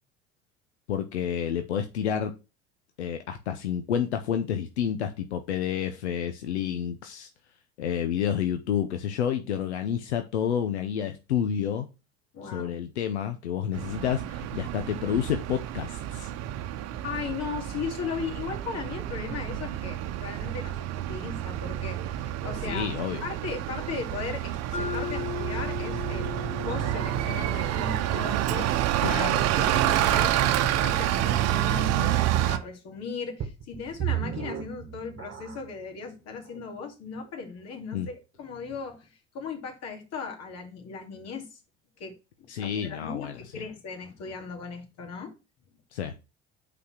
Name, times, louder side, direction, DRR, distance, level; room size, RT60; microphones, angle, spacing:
voice 1, 0.9-2.3 3.0-7.3 7.8-11.9 12.5-16.3 22.7-23.2 29.0-29.4 37.9-38.1 42.5-43.3 45.9-46.1, left 8 dB, 90° left, 0.7 m, -29 dB
voice 2, 12.3-12.7 17.0-22.9 23.2-41.6 42.0-45.3, left 5 dB, 50° left, 2.4 m, -37 dB
Bus, 13.7-32.6, right 12 dB, 55° right, 0.8 m, -28 dB
Mallet percussion, 24.7-28.8, left 9 dB, 20° left, 0.6 m, -38 dB
sound 1, 33.4-35.8 36.5-36.6 37.2-37.3, right 11 dB, 35° right, 1.2 m, -34 dB
5.6 x 4.2 x 5.8 m
hypercardioid pair, 75°, 32 cm